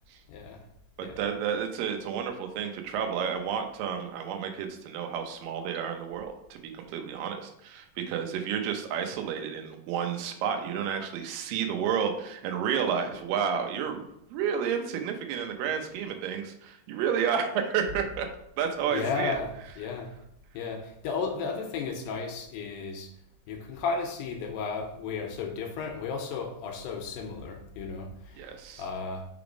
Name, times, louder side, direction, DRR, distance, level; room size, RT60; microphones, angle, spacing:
voice 1, 0.3-0.6 1.0-1.2 18.9-20.1 20.5-23.1 23.5-28.5 28.8-29.3, left 5 dB, 80° left, 2.3 m, -34 dB
voice 2, 1.2-14.0 14.3-18.3 18.6-19.4 28.4-28.8, right 7 dB, 75° right, 2.2 m, -31 dB
5.8 x 3.5 x 4.9 m
omnidirectional pair, 4.5 m